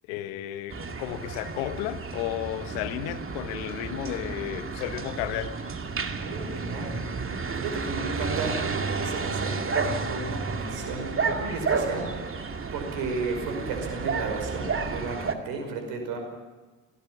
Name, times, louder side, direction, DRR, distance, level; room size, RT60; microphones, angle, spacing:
voice 1, 0.1-5.6, left 13 dB, 75° left, 1.3 m, -33 dB
sound 1, 0.7-15.4, right 4 dB, 35° right, 2.3 m, -31 dB
voice 2, 6.2-7.0 7.6-12.4 12.7-16.2, right 3 dB, 75° right, 5.2 m, -34 dB
24.5 x 18.0 x 6.1 m
figure-of-eight pair, 45°, 39 cm